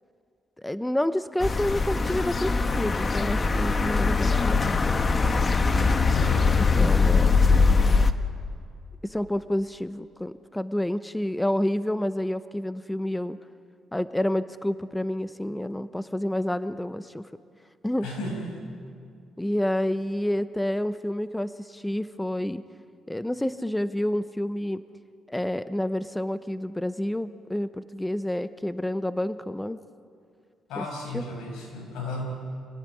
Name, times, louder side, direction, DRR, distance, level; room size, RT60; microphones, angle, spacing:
voice 1, 0.6-4.6 6.6-7.4 9.0-13.4 13.9-17.3 17.8-18.1 19.4-22.6 23.1-24.8 25.3-29.8 30.8-30.9 31.1-31.3, left 1 dB, 5° left, 12 dB, 0.8 m, -29 dB
sound 1, 1.4-8.1, left 4 dB, 30° left, 1.3 m, -22 dB
voice 2, 6.1-6.6 18.0-18.6 30.7-32.4, left 1 dB, 90° left, 1 dB, 7.1 m, -34 dB
27.5 x 18.0 x 9.8 m, 2.4 s
cardioid pair, 90°, 0 cm